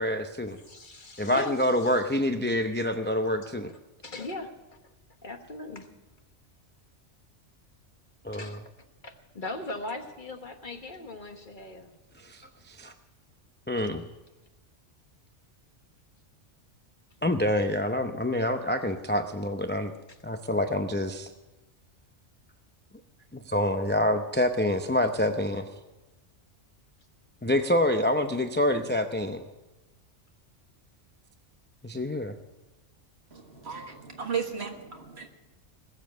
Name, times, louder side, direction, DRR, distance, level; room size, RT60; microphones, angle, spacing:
voice 1, 0.0-0.6 1.2-3.7 8.2-8.6 12.2-12.9 13.7-14.1 17.2-19.9 20.2-21.3 23.3-25.7 27.4-29.5 31.8-32.3, left 1 dB, 15° left, 6 dB, 0.4 m, -27 dB
voice 2, 0.7-1.6 4.0-4.5 5.2-5.9 8.3-8.6 9.0-11.9, left 2 dB, 45° left, 5 dB, 1.3 m, -39 dB
voice 3, 33.3-35.3, right 6 dB, 60° right, 4 dB, 1.8 m, -35 dB
20.0 x 7.4 x 7.8 m, 1.1 s
omnidirectional pair, 1.2 m